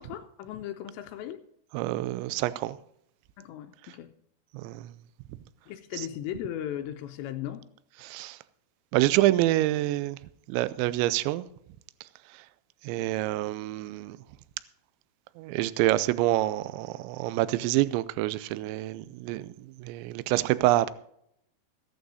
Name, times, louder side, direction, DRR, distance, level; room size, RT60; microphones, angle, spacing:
voice 1, 0.0-1.4 3.4-4.1 5.7-7.7, left 11 dB, 80° left, 2.7 m, -37 dB
voice 2, 1.7-2.8 4.5-4.9 8.0-8.4 8.9-10.2 10.5-11.4 12.8-14.2 15.4-19.5 19.8-20.9, right 16 dB, 85° right, 2.9 m, -27 dB
15.0 x 13.5 x 2.7 m
omnidirectional pair, 5.2 m